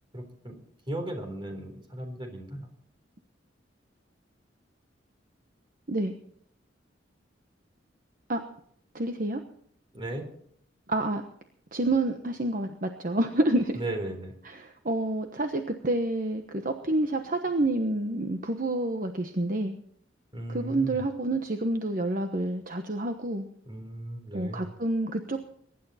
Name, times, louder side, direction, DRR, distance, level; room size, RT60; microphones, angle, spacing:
voice 1, 0.1-0.6 0.9-2.7 9.9-10.3 13.7-14.3 20.3-21.0 23.7-24.7, right 1 dB, 25° right, 4 dB, 3.8 m, -36 dB
voice 2, 8.9-9.4 10.9-11.2 11.7-13.8 14.4-19.7 20.5-23.4 24.3-25.4, right 2 dB, 50° right, 6 dB, 1.1 m, -28 dB
22.5 x 11.5 x 4.3 m, 0.65 s
head